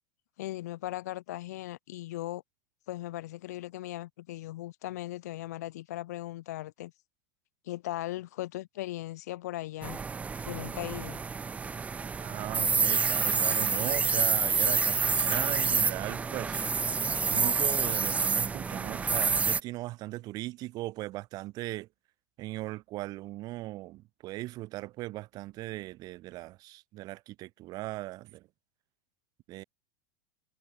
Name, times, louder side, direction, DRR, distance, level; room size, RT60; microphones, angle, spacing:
voice 1, 0.4-2.4 2.9-6.9 7.6-10.0 10.4-11.2, left 16 dB, 60° left, 4.4 m, -38 dB
sound 1, 9.8-19.6, right 5 dB, 15° right, 0.5 m, -28 dB
voice 2, 12.2-16.6 17.2-21.9 22.4-28.5 29.5-29.6, right 18 dB, 40° right, 1.9 m, -38 dB
figure-of-eight pair, 90°, 10 cm